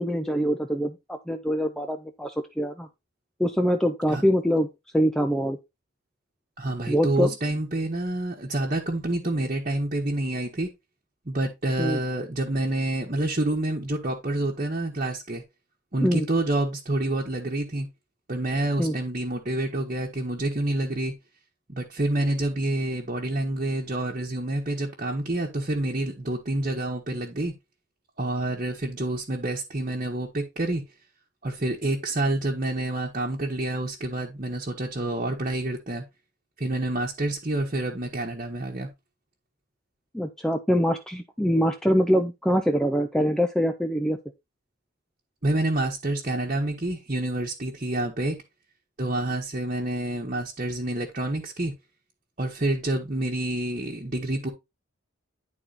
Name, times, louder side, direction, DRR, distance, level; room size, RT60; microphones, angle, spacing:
voice 1, 0.0-2.9 3.4-4.7 4.9-5.6 6.9-7.3 11.8-12.0 16.0-16.3 18.8-19.0 40.1-44.2, equal, 5° left, 0.5 m, -24 dB
voice 2, 6.6-10.7 11.2-15.4 15.9-17.9 18.3-21.1 21.7-27.5 28.2-30.8 31.4-36.0 36.6-38.9 45.4-48.4 49.0-51.7 52.4-54.5, right 1 dB, 35° right, 1.3 m, -28 dB
10.5 x 4.2 x 4.1 m
head